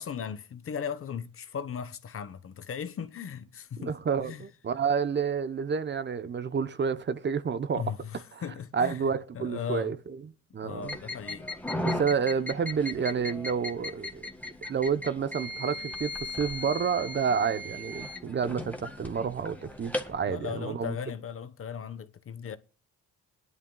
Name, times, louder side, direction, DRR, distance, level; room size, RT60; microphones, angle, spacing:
voice 1, 0.0-4.5 7.7-9.9 10.6-11.5 20.3-22.6, left 7 dB, 45° left, 1.0 m, -37 dB
voice 2, 3.8-7.8 8.7-11.0 11.8-14.2 14.7-21.0, right 6 dB, 35° right, 0.8 m, -29 dB
sound 1, 10.8-20.2, left 1 dB, 5° left, 1.7 m, -37 dB
20.5 x 11.0 x 2.3 m
cardioid pair, 90°, 30 cm